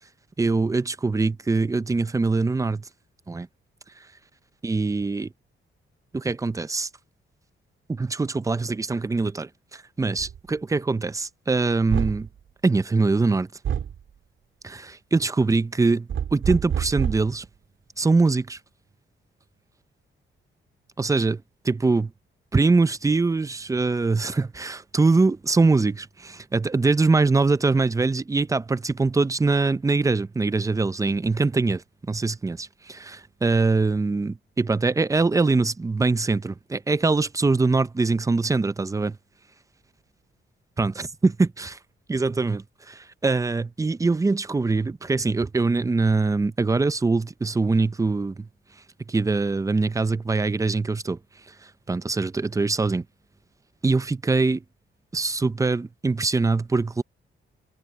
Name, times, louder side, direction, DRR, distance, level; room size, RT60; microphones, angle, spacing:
voice 1, 0.4-2.9 3.3-3.5 4.0-4.1 4.6-5.3 6.1-6.9 7.9-12.3 12.6-13.5 14.6-17.5 18.0-18.6 21.0-21.4 21.7-22.1 22.5-39.2 40.8-41.8 42.1-48.5 49.1-51.2 51.5-53.1 53.8-54.6 55.1-57.0, right 3 dB, 15° right, 0.5 m, -23 dB
sound 1, 10.2-10.4 11.9-12.3 13.6-14.0 16.1-17.4, right 8 dB, 65° right, 2.5 m, -27 dB
cardioid pair, 130°, 21 cm